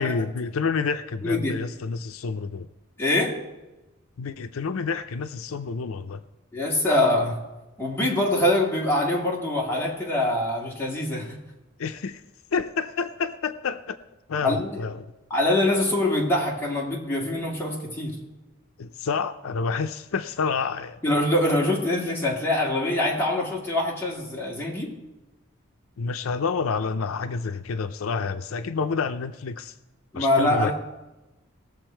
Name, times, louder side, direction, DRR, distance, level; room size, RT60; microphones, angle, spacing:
voice 1, 0.0-2.7 4.2-6.2 11.8-12.2 12.5-14.0 14.3-15.1 18.8-21.0 26.0-29.7 30.1-30.7, left 5 dB, 85° left, 10 dB, 0.5 m, -28 dB
voice 2, 1.2-1.5 3.0-3.4 6.5-7.4 7.8-11.4 14.4-14.8 15.3-18.2 21.0-24.9 30.1-30.7, left 1 dB, 10° left, -4 dB, 2.2 m, -24 dB
18.5 x 7.0 x 4.4 m, 1.1 s
head